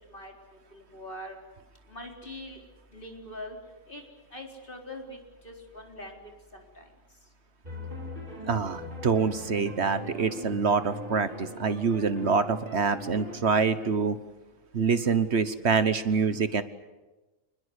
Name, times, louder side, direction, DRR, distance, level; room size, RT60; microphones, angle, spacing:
voice 1, 0.7-1.4 1.9-2.6 2.9-3.6 3.9-4.0 4.3-5.2 5.4-6.9, left 1 dB, 45° left, 1 dB, 4.5 m, -42 dB
sound 1, 7.6-13.4, equal, 40° right, 6.2 m, -40 dB
voice 2, 8.5-14.2 14.7-16.6, right 5 dB, 60° right, 12 dB, 1.4 m, -26 dB
28.5 x 20.5 x 8.2 m, 1.1 s
omnidirectional pair, 1.3 m